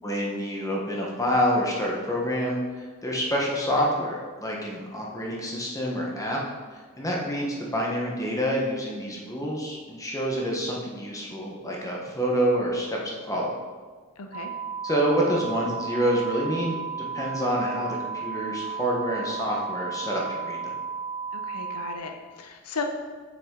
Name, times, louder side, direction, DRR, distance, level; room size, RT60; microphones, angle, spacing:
voice 1, 0.0-6.4 7.0-13.5 14.8-20.6, equal, 15° left, -2 dB, 1.1 m, -27 dB
voice 2, 14.2-14.5 21.3-22.8, left 4 dB, 75° left, 4 dB, 0.7 m, -36 dB
sound 1, 14.3-22.0, right 5 dB, 30° right, 0.6 m, -34 dB
7.7 x 5.9 x 3.8 m, 1.5 s
head